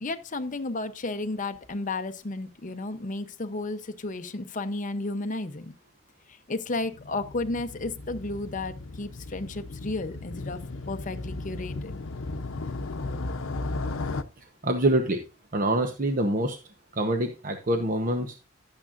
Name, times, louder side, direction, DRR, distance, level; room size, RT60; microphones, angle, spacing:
voice 1, 0.0-5.7 6.5-10.6 10.9-11.9, left 2 dB, 40° left, 0.8 m, -33 dB
Motorcycle, 6.7-14.2, left 2 dB, 90° left, 0.7 m, -35 dB
voice 2, 14.6-15.2 15.5-16.6 16.9-18.3, right 1 dB, 45° right, 0.9 m, -25 dB
12.0 x 8.8 x 2.5 m
head